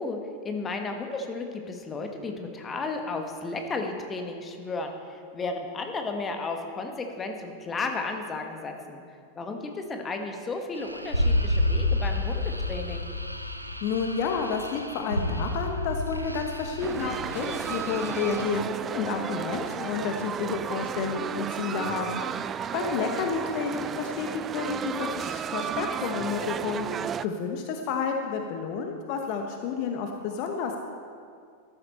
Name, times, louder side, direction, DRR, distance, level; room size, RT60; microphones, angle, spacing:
voice 1, 0.0-9.0 9.4-13.1, left 3 dB, 20° left, 4 dB, 1.4 m, -33 dB
sound 1, 10.8-18.4, left 1 dB, 90° right, 0.7 m, -30 dB
voice 2, 13.8-22.2 22.5-24.3 24.5-26.9 27.2-30.8, left 5 dB, 45° left, 4 dB, 1.0 m, -30 dB
sound 2, 16.8-27.3, right 8 dB, 25° right, 0.3 m, -33 dB
13.0 x 12.5 x 4.3 m, 2.2 s
figure-of-eight pair, 90°, 0 cm